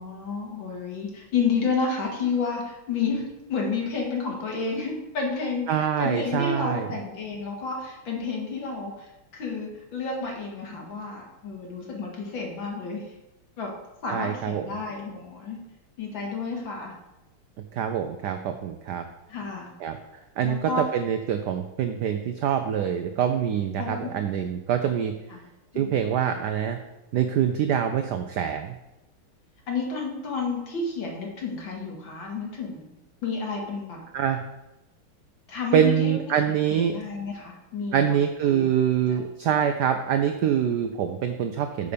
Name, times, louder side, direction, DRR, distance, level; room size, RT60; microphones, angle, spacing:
voice 1, 0.0-13.1 13.6-13.7 14.0-15.6 16.0-16.9 19.3-19.7 20.4-20.8 23.8-24.1 25.3-25.4 25.7-26.0 29.7-33.0 33.2-34.0 35.5-36.1 36.5-38.1 38.5-38.6, left 4 dB, 60° left, 0 dB, 2.4 m, -30 dB
voice 2, 5.7-6.9 14.1-14.7 17.7-19.0 19.8-20.0 20.4-25.1 25.7-26.8 27.1-28.7 34.1-34.4 35.7-37.0 37.9-41.9, right 9 dB, 80° right, 7 dB, 0.9 m, -25 dB
6.9 x 5.1 x 6.7 m, 0.96 s
omnidirectional pair, 2.4 m